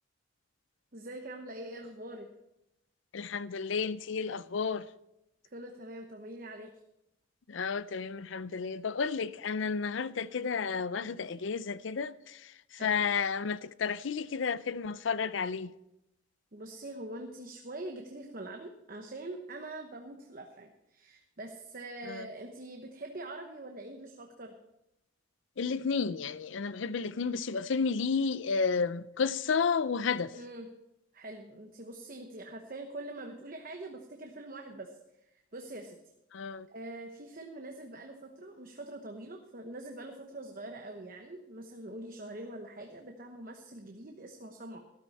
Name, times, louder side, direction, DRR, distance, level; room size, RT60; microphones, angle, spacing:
voice 1, 0.9-2.3 5.5-6.7 12.7-13.0 16.5-24.5 30.3-30.7 31.1-35.0 35.5-36.0 36.7-44.8, right 1 dB, 45° right, 1.0 m, -44 dB
voice 2, 3.1-4.9 7.5-15.7 22.1-22.3 25.6-30.3 36.3-36.7, left 5 dB, 70° left, 0.5 m, -32 dB
13.0 x 12.5 x 4.2 m
head